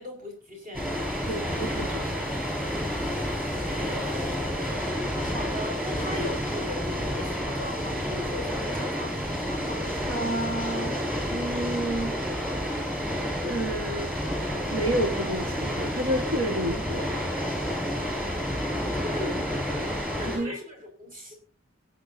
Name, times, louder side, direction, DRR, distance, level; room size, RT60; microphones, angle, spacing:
voice 1, 0.0-1.6 3.6-4.9 5.2-10.1 18.8-21.3, left 1 dB, 45° right, 2 dB, 5.1 m, -39 dB
Water, 0.7-20.4, equal, 10° right, 5.0 m, -30 dB
voice 2, 1.3-2.2 10.0-11.0 11.3-12.1 13.4-14.1 14.7-17.1 20.2-20.6, right 1 dB, 80° right, 3 dB, 1.5 m, -30 dB
22.5 x 8.5 x 2.6 m, 0.34 s
head